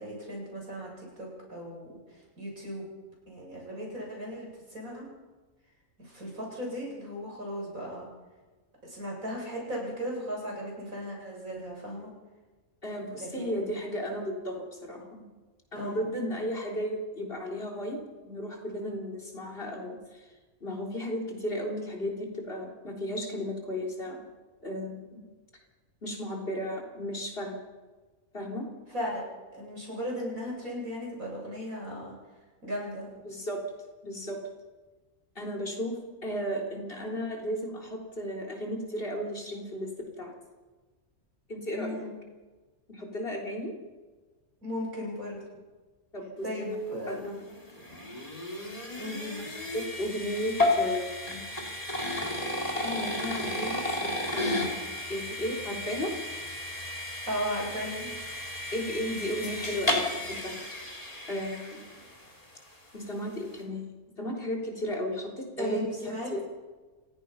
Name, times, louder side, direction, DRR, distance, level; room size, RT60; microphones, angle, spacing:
voice 1, 0.0-2.9 3.3-5.0 6.0-8.1 8.8-12.1 13.1-13.6 15.7-16.0 28.9-29.2 29.5-32.1 32.6-33.1 41.7-42.1 44.6-45.4 46.4-47.2 49.0-49.5 57.3-58.1 65.6-66.4, equal, 85° right, -2 dB, 8.0 m, -36 dB
voice 2, 12.8-15.2 15.7-18.0 18.2-20.3 20.6-24.2 24.6-25.2 26.0-27.6 28.3-28.7 33.2-33.6 34.0-34.4 35.4-40.3 41.5-42.0 42.9-43.7 46.1-46.8 47.1-47.4 49.7-51.4 52.8-54.8 55.1-56.1 58.7-61.0 61.3-61.9 62.9-63.9 64.2-66.4, equal, 45° left, 0 dB, 3.9 m, -34 dB
sound 1, 47.1-62.3, left 2 dB, 25° left, 4.0 m, -33 dB
29.5 x 16.5 x 5.7 m, 1.3 s
omnidirectional pair, 1.4 m